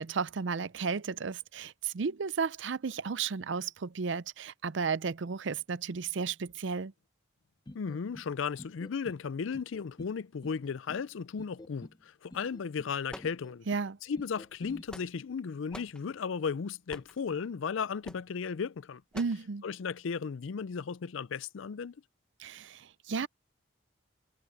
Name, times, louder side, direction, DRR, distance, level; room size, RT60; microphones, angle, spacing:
voice 1, 0.0-6.9 13.7-14.0 19.1-19.6 22.4-23.3, right 5 dB, 65° right, 0.5 m, -33 dB
voice 2, 7.7-13.7 14.0-19.0 19.6-21.9, left 6 dB, 75° left, 0.4 m, -35 dB
sound 1, 7.7-8.3 8.6-9.2 9.5-10.1 10.4-11.0 11.4-12.0 12.3-12.9 13.2-13.8 14.2-14.8, left 1 dB, 20° left, 0.5 m, -49 dB
sound 2, 13.1-13.9 14.6-15.3 15.7-16.0 16.9-17.2 18.0-18.3 19.1-19.5, left 1 dB, 5° left, 1.0 m, -47 dB
head